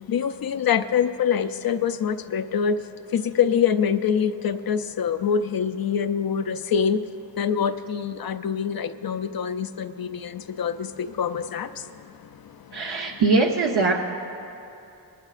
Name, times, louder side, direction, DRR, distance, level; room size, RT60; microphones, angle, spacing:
voice 1, 0.0-2.8 3.1-7.0 7.4-11.8, left 7 dB, 55° left, 9 dB, 0.5 m, -25 dB
voice 2, 12.7-14.0, right 3 dB, 65° right, 0 dB, 0.9 m, -21 dB
24.0 x 11.5 x 2.5 m, 2.8 s
wide cardioid pair, 115°, 44 cm